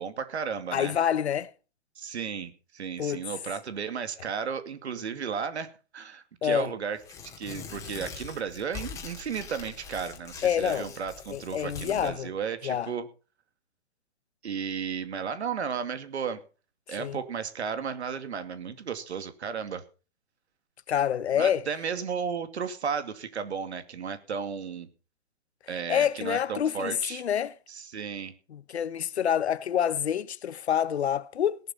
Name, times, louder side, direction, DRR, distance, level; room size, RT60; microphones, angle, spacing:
voice 1, 0.0-1.0 2.0-7.0 7.4-13.1 14.4-16.4 16.9-19.8 21.4-24.9 25.7-27.2 27.7-28.3, right 6 dB, 85° right, 2.5 m, -34 dB
voice 2, 0.7-1.5 3.0-3.2 6.4-6.7 10.4-10.9 11.3-12.3 12.6-12.9 17.0-17.2 20.9-21.6 25.9-27.5 28.5-31.6, left 9 dB, 80° left, 1.2 m, -27 dB
Tearing, 7.0-12.1, left 6 dB, 10° left, 2.6 m, -43 dB
18.0 x 12.0 x 4.3 m
hypercardioid pair, 165°, 32 cm